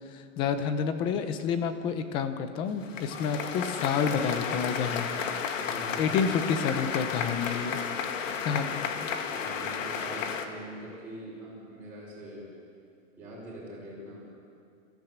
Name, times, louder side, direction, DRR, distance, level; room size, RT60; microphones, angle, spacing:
voice 1, 0.1-5.1 6.0-7.8 8.4-9.1, left 6 dB, 15° left, 9 dB, 0.6 m, -29 dB
sound 1, 2.7-10.5, left 6 dB, 80° left, 2.2 m, -33 dB
voice 2, 5.6-6.0 9.3-12.5 13.2-14.3, right 1 dB, 5° right, -10 dB, 4.9 m, -43 dB
29.0 x 15.5 x 8.0 m, 2.4 s
supercardioid pair, 175°, 38 cm